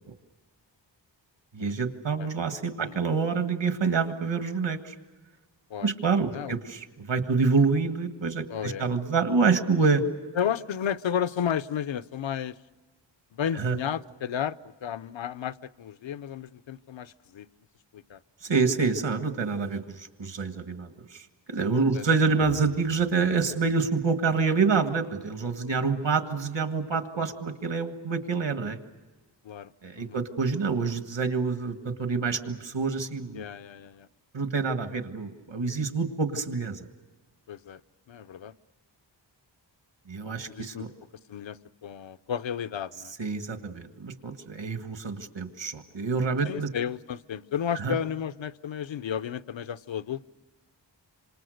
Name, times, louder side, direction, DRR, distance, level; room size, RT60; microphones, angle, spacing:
voice 1, 1.5-4.9 5.8-10.0 13.5-13.8 18.4-28.8 29.8-33.4 34.3-36.9 40.1-40.9 43.2-46.7 47.7-47.9, right 4 dB, 70° right, 8 dB, 1.8 m, -27 dB
voice 2, 8.5-8.9 10.4-12.6 13.3-17.5 17.9-18.2 21.9-22.1 25.6-26.1 29.4-29.7 30.0-30.2 33.3-34.1 37.5-37.8 38.1-38.5 40.5-40.8 41.3-43.1 46.5-50.3, left 8 dB, 80° left, 14 dB, 0.7 m, -33 dB
sound 1, 22.3-24.6, right 3 dB, 85° right, 4.4 m, -49 dB
26.5 x 26.5 x 6.5 m, 1.2 s
wide cardioid pair, 90°, 45 cm